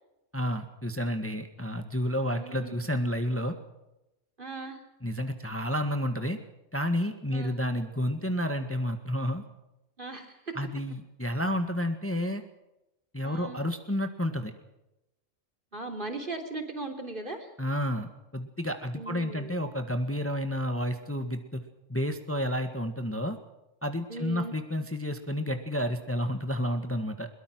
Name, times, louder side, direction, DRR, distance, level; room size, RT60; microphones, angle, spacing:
voice 1, 0.3-3.5 5.0-6.4 6.7-9.4 10.5-12.4 13.1-14.5 17.6-21.6 21.9-23.4 23.8-27.3, equal, 10° left, 6 dB, 1.7 m, -30 dB
voice 2, 2.3-2.8 4.4-4.8 7.3-7.6 10.0-10.5 13.2-13.6 15.7-17.5 18.9-19.6 24.1-24.6, right 2 dB, 40° right, 5 dB, 3.6 m, -38 dB
22.5 x 22.0 x 6.2 m, 0.93 s
omnidirectional pair, 1.3 m